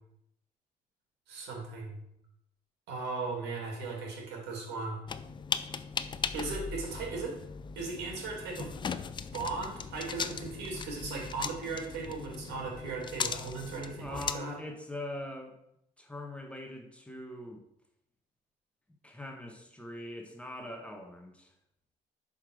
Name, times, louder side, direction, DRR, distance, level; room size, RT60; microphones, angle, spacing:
voice 1, 1.3-2.0 2.9-5.0 6.3-7.4 7.8-8.7 9.3-14.6, right 4 dB, 85° right, 1 dB, 2.3 m, -37 dB
sound 1, 5.1-14.3, left 6 dB, 30° left, 0.4 m, -38 dB
voice 2, 14.0-15.6 16.0-17.6 19.0-21.5, left 1 dB, 5° left, 2 dB, 1.2 m, -42 dB
5.6 x 5.0 x 6.1 m, 0.77 s
cardioid pair, 110°, 17 cm